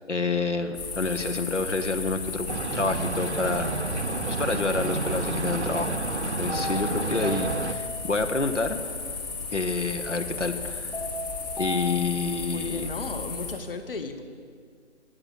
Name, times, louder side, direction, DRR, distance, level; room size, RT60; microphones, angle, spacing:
voice 1, 0.1-3.7 4.3-6.0 6.4-8.8 9.5-10.9 11.6-12.9, left 3 dB, 85° left, 6 dB, 1.0 m, -28 dB
sound 1, 0.7-13.5, left 4 dB, 20° left, 1.4 m, -35 dB
sound 2, 2.5-7.7, right 3 dB, 70° right, 0.8 m, -30 dB
sound 3, 6.5-8.4 10.9-12.4, left 2 dB, ahead, 0.4 m, -36 dB
voice 2, 12.5-14.2, left 4 dB, 50° left, 7 dB, 1.0 m, -35 dB
9.2 x 8.8 x 8.0 m, 2.1 s
figure-of-eight pair, 150°, 35 cm